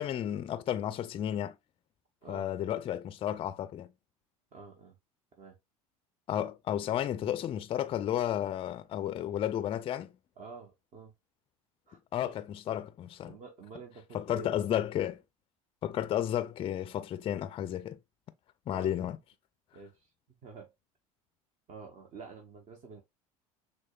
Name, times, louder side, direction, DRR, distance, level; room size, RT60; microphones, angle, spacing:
voice 1, 0.0-1.6 2.3-3.9 6.3-10.1 12.1-13.3 14.1-15.2 15.8-18.0 18.7-19.2, left 11 dB, 30° left, 0.4 m, -32 dB
voice 2, 4.5-5.0 5.4-5.6 10.4-11.1 11.9-12.3 13.2-14.5 18.7-19.0 19.7-20.1 20.4-20.7 21.7-23.0, right 4 dB, 40° right, 0.8 m, -48 dB
6.2 x 2.2 x 2.2 m
hypercardioid pair, 75°, 19 cm